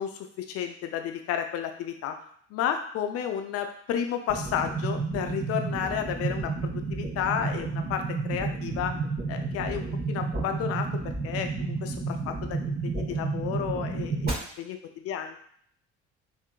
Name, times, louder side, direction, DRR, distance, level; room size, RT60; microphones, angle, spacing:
voice 1, 0.0-2.1 2.5-9.0 9.3-10.9 11.2-14.8 15.1-15.3, left 9 dB, 45° left, 6 dB, 0.5 m, -32 dB
sound 1, 4.3-14.3, right 4 dB, 30° right, 1.3 m, -31 dB
3.6 x 2.6 x 2.3 m, 0.62 s
figure-of-eight pair, 50°, 36 cm